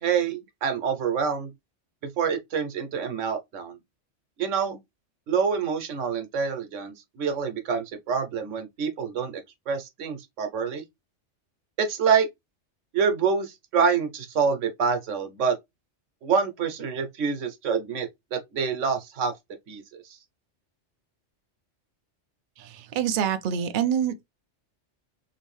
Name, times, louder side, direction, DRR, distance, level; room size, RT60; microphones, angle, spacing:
voice 1, 0.0-1.5 2.2-3.8 4.4-4.8 5.3-10.8 11.8-12.3 12.9-15.6 16.2-19.3 19.7-20.2, right 6 dB, 80° right, 1.1 m, -26 dB
voice 2, 22.6-24.3, right 9 dB, 60° right, 0.6 m, -26 dB
3.0 x 2.6 x 3.1 m
omnidirectional pair, 1.2 m